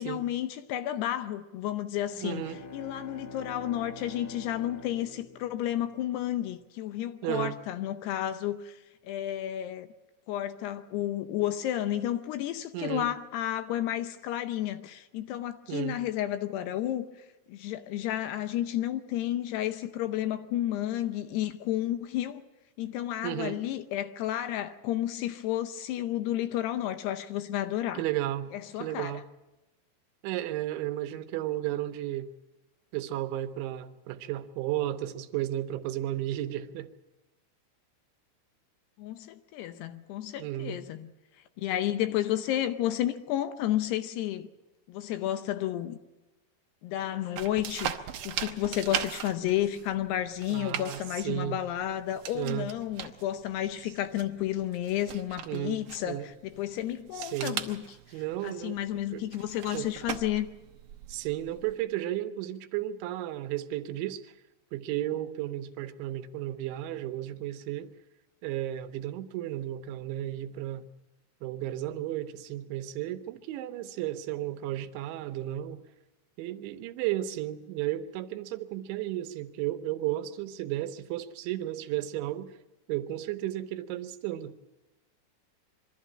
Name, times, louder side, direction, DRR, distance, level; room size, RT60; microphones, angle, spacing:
voice 1, 0.0-9.9 10.3-17.1 17.5-22.4 22.8-28.0 28.5-29.2 39.0-41.1 41.6-44.5 44.9-46.0 46.8-47.9 48.2-60.5, left 12 dB, 75° left, 2.7 m, -32 dB
sound 1, 2.1-6.1, left 2 dB, 50° left, 2.9 m, -46 dB
voice 2, 2.2-2.6 7.2-7.6 12.7-13.1 15.7-16.0 23.2-23.6 28.0-28.5 28.8-29.3 30.2-32.3 32.9-36.9 40.4-40.8 50.5-51.6 52.3-52.7 55.5-55.8 56.1-56.3 57.2-57.6 58.1-58.8 59.1-59.2 59.7-59.9 61.1-64.3 64.7-67.9 68.4-70.9 71.4-75.8 76.4-82.5 82.9-84.6, right 13 dB, 90° right, 3.3 m, -33 dB
sound 2, 47.4-61.8, right 10 dB, 70° right, 2.1 m, -40 dB
23.5 x 13.0 x 8.7 m
omnidirectional pair, 5.2 m